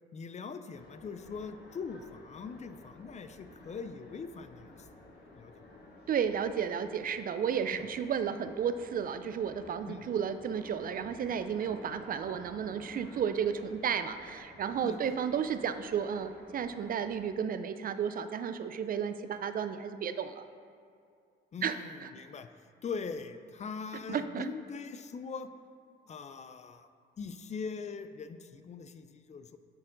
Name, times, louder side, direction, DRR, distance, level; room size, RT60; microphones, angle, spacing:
voice 1, 0.1-4.7 5.4-5.7 7.7-7.8 9.9-10.0 14.8-15.2 21.5-22.5 22.8-25.5 26.1-26.9 27.2-29.6, left 5 dB, 35° left, 10 dB, 0.4 m, -41 dB
sound 1, 0.7-17.3, left 2 dB, 55° left, 1.4 m, -53 dB
voice 2, 6.1-20.4 21.6-22.1 24.1-24.5, right 7 dB, 45° right, 10 dB, 0.4 m, -33 dB
9.5 x 4.4 x 3.8 m, 2.4 s
cardioid pair, 90°, 20 cm